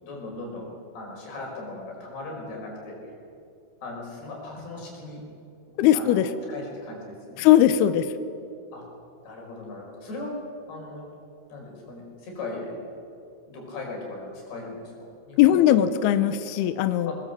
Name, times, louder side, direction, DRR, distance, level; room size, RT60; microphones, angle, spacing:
voice 1, 0.0-3.2 3.8-5.2 5.9-7.5 8.7-8.8 9.2-10.3 10.7-11.0 11.5-12.9 13.5-15.6 17.1-17.2, left 2 dB, 55° left, -1 dB, 6.8 m, -38 dB
voice 2, 5.8-6.3 7.4-8.1 15.4-17.1, left 12 dB, 85° left, 11 dB, 2.3 m, -19 dB
22.0 x 20.5 x 7.7 m, 2.6 s
omnidirectional pair, 5.5 m